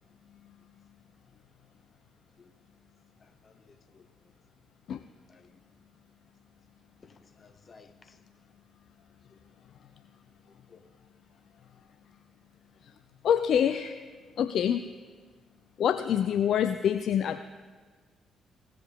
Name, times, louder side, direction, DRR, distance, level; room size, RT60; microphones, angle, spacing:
voice 1, 2.4-2.8 3.2-4.3 5.3-5.6 7.0-8.3 9.3-9.5 10.5-10.9, left 4 dB, 40° left, 0.9 m, -59 dB
voice 2, 13.2-14.0 14.4-14.8 15.8-17.4, left 9 dB, 60° left, 0.3 m, -26 dB
17.0 x 7.5 x 3.5 m
hypercardioid pair, 45°, 0 cm